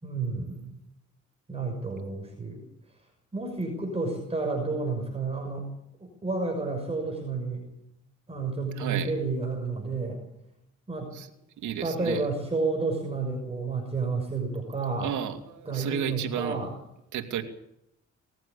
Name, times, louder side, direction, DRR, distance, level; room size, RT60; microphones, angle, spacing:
voice 1, 0.0-0.7 1.5-2.6 3.3-5.7 6.0-7.6 8.3-10.2 10.9-11.1 11.8-15.1 15.7-16.7, right 3 dB, 20° right, 1 dB, 6.1 m, -30 dB
voice 2, 8.8-9.1 11.1-11.3 11.6-12.3 15.0-16.7 17.1-17.4, right 9 dB, 75° right, 6 dB, 2.6 m, -32 dB
20.5 x 15.0 x 8.5 m, 0.79 s
cardioid pair, 90°, 30 cm